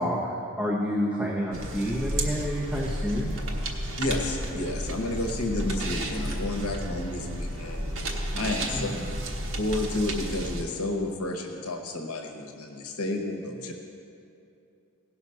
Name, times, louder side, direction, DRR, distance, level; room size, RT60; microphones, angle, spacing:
voice 1, 0.0-3.3 8.7-9.1, equal, 5° right, -4 dB, 0.9 m, -29 dB
sound 1, 1.5-10.6, right 1 dB, 65° right, 1.2 m, -32 dB
voice 2, 4.0-7.9 8.3-8.9 9.6-13.7, left 2 dB, 70° left, 3 dB, 1.0 m, -31 dB
16.5 x 5.9 x 5.5 m, 2.6 s
head